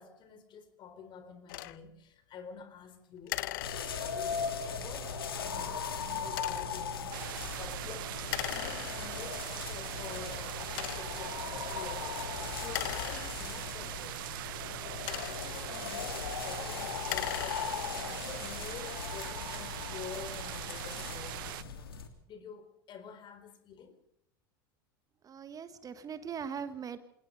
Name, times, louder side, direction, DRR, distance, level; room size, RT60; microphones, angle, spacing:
voice 1, 0.0-3.4 3.7-14.4 14.9-17.8 18.1-21.9 22.3-24.0, left 6 dB, 40° left, 10 dB, 4.3 m, -48 dB
sound 1, 1.5-1.8 3.3-4.3 6.3-6.8 8.3-9.3 10.0-10.1 10.7-11.3 12.6-13.8 14.7-15.6 16.9-18.0, left 17 dB, 65° left, 1.0 m, -39 dB
sound 2, 3.6-22.1, left 5 dB, 80° left, 3.0 m, -39 dB
sound 3, 7.1-21.6, right 16 dB, 65° right, 0.9 m, -42 dB
voice 2, 25.2-27.0, right 7 dB, 30° right, 12 dB, 1.5 m, -40 dB
27.0 x 19.0 x 5.4 m, 0.72 s
hypercardioid pair, 85°, 12 cm